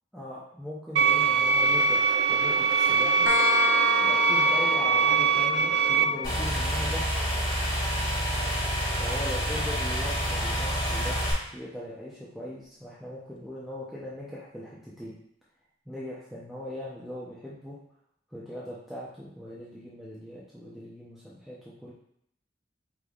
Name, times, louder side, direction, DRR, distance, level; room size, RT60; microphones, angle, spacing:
voice 1, 0.1-3.3 4.0-7.1 9.0-11.2 11.5-15.1 15.9-17.8 18.3-21.9, equal, ahead, -8 dB, 0.7 m, -39 dB
sound 1, 1.0-6.0, right 5 dB, 75° right, 0.3 m, -22 dB
sound 2, 3.3-10.7, left 4 dB, 80° left, 0.5 m, -34 dB
sound 3, 6.2-11.3, equal, 25° left, 1.7 m, -28 dB
5.0 x 3.2 x 2.4 m, 0.71 s
head